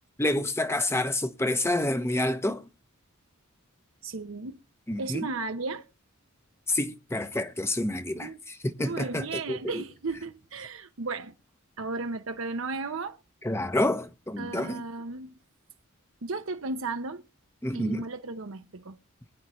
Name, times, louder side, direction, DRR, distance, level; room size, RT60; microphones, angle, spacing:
voice 1, 0.2-2.6 4.9-5.3 6.7-9.7 13.4-14.8 17.6-18.0, left 1 dB, 10° left, 0.9 m, -28 dB
voice 2, 4.0-4.6 5.0-5.9 8.2-8.4 8.8-11.3 11.8-13.2 14.4-15.3 16.2-17.2 17.7-19.0, right 3 dB, 70° right, 0.8 m, -34 dB
21.5 x 9.8 x 3.1 m
head